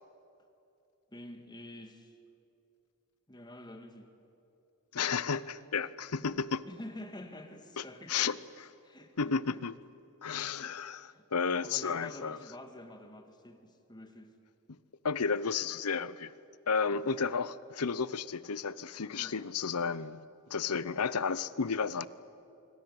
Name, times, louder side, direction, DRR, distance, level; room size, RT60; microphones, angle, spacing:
voice 1, 1.1-2.2 3.3-4.1 6.7-8.3 8.8-9.6 10.4-10.8 11.1-11.3 11.6-14.3 16.9-17.1 19.2-19.4 20.9-21.1, left 1 dB, 20° left, 1.9 m, -48 dB
voice 2, 4.9-6.6 7.8-8.7 9.2-9.7 10.2-12.4 15.0-16.3 16.7-20.2 20.5-22.1, left 5 dB, 85° left, 0.8 m, -32 dB
25.5 x 25.0 x 8.1 m
head